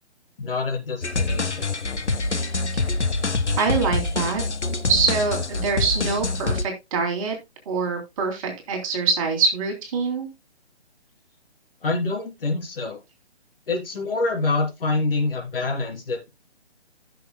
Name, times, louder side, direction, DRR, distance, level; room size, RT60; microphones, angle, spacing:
voice 1, 0.4-1.7 11.8-13.0 13.7-16.3, left 3 dB, 55° left, 2 dB, 3.6 m, -26 dB
sound 1, 1.0-6.6, left 3 dB, 90° left, 1.1 m, -25 dB
voice 2, 3.6-4.4 4.9-7.4 7.7-10.3, right 4 dB, 30° right, 2 dB, 2.9 m, -24 dB
15.5 x 6.6 x 2.2 m, 0.22 s
figure-of-eight pair, 145°, 33 cm